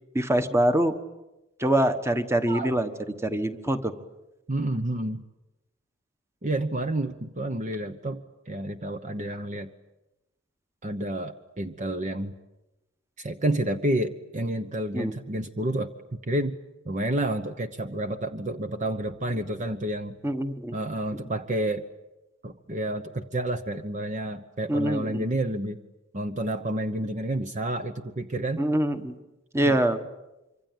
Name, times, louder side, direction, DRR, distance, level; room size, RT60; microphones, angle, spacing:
voice 1, 0.1-0.9 1.6-2.9 3.2-3.9 14.9-15.1 20.2-20.7 24.7-25.2 28.6-29.1 29.5-30.0, right 1 dB, 15° right, 9 dB, 1.4 m, -24 dB
voice 2, 4.5-5.2 6.4-9.7 10.8-12.3 13.2-15.9 16.3-16.6 16.8-20.2 20.7-21.8 22.4-25.8 26.1-28.7 29.6-29.8, right 1 dB, 35° right, 8 dB, 1.0 m, -29 dB
25.5 x 25.5 x 9.2 m, 0.98 s
head